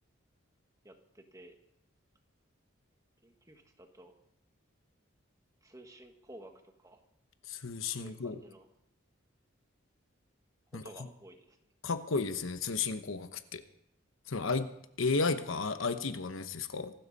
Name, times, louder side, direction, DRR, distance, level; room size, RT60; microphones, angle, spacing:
voice 1, 0.8-1.6 3.2-4.1 5.6-6.5 6.8-7.0 8.0-8.7 10.7-11.6, right 1 dB, 15° right, 5 dB, 1.5 m, -53 dB
voice 2, 7.5-8.4 10.7-10.8 11.8-13.6 14.3-14.7 15.0-16.9, left 4 dB, 85° left, 10 dB, 1.0 m, -33 dB
25.0 x 12.5 x 4.2 m, 0.78 s
head